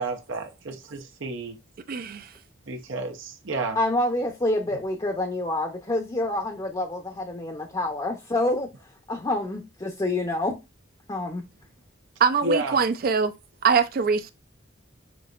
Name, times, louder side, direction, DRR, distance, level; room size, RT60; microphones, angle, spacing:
voice 1, 0.0-1.6 2.7-3.8 12.4-12.8, right 2 dB, 80° right, 0.9 m, -30 dB
voice 2, 1.9-2.3 12.2-13.3 13.6-14.3, right 6 dB, 50° right, 0.4 m, -23 dB
voice 3, 3.7-8.7 9.1-10.6 11.1-11.5, left 1 dB, 20° left, 0.6 m, -27 dB
6.0 x 2.6 x 2.4 m
head